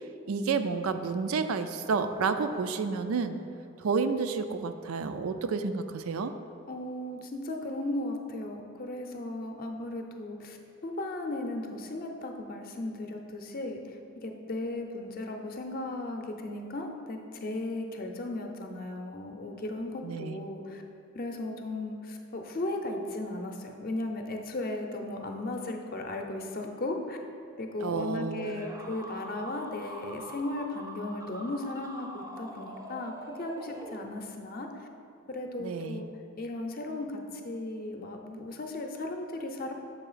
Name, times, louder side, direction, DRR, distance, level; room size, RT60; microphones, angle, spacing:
voice 1, 0.3-3.4 3.8-6.3 20.0-20.4 27.8-28.7 35.6-36.0, right 5 dB, 85° right, 9 dB, 0.4 m, -30 dB
voice 2, 6.7-10.6 10.8-20.8 21.1-27.2 27.6-34.9 35.3-36.1 36.4-39.7, left 2 dB, 45° left, 3 dB, 0.6 m, -36 dB
Inhale Screech, 28.4-34.5, right 1 dB, 15° right, 0.5 m, -44 dB
7.1 x 3.3 x 5.6 m, 2.8 s
head